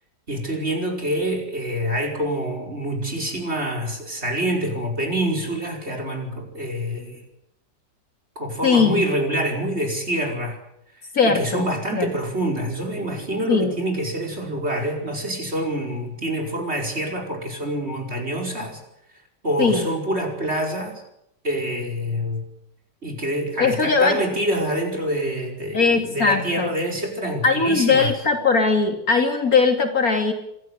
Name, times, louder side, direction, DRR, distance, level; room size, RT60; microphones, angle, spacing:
voice 1, 0.3-7.2 8.4-10.6 11.2-18.8 19.4-21.0 21.4-22.4 23.0-28.1, right 1 dB, 35° right, 2 dB, 5.5 m, -26 dB
voice 2, 8.6-9.0 11.1-11.7 11.9-12.1 13.5-13.8 19.6-19.9 23.6-24.2 25.7-26.7 27.4-30.3, left 4 dB, 55° left, 5 dB, 3.0 m, -19 dB
26.5 x 14.0 x 9.8 m, 0.78 s
omnidirectional pair, 1.9 m